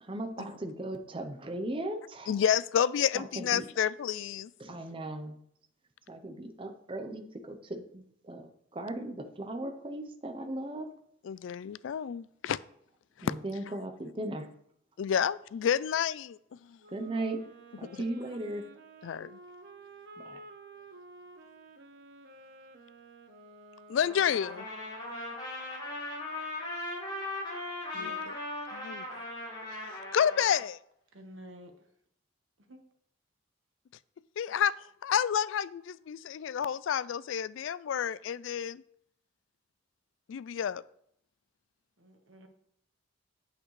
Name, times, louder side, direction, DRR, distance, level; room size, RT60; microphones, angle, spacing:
voice 1, 0.0-2.4 3.4-3.6 4.6-5.4 6.1-10.9 13.2-14.5 16.9-17.5 17.8-18.6 20.2-20.4, right 1 dB, 25° right, 0.7 m, -37 dB
voice 2, 2.3-4.5 11.2-12.6 13.2-13.3 15.0-16.8 17.9-18.0 19.0-19.4 23.9-24.7 28.0-28.1 28.7-29.0 29.9-30.8 34.4-34.8 35.0-38.8 40.3-40.8, left 8 dB, 70° left, 0.3 m, -30 dB
Wind instrument woodwind instrument, 16.8-25.1, right 2 dB, 60° right, 1.0 m, -52 dB
Trumpet, 24.1-30.6, left 2 dB, 25° left, 3.3 m, -38 dB
voice 3, 27.9-28.4 31.1-31.7 32.7-32.8 42.0-42.5, left 1 dB, 75° right, 1.4 m, -49 dB
8.8 x 7.8 x 3.2 m
head